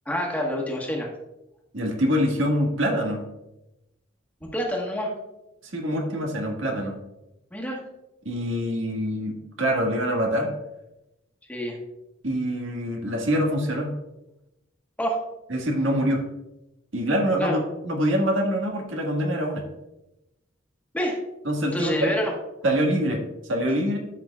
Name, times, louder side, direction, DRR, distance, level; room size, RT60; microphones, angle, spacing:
voice 1, 0.0-1.1 4.5-5.1 7.5-7.8 11.5-11.8 15.0-15.2 17.4-17.6 20.9-21.2 21.7-22.3, equal, 10° left, -2 dB, 1.3 m, -27 dB
voice 2, 1.7-3.2 5.7-6.9 8.2-10.5 12.2-13.9 15.5-16.2 16.9-19.6 21.4-22.1 22.6-24.0, equal, 90° right, 1 dB, 1.7 m, -25 dB
13.0 x 6.2 x 2.4 m, 0.96 s
head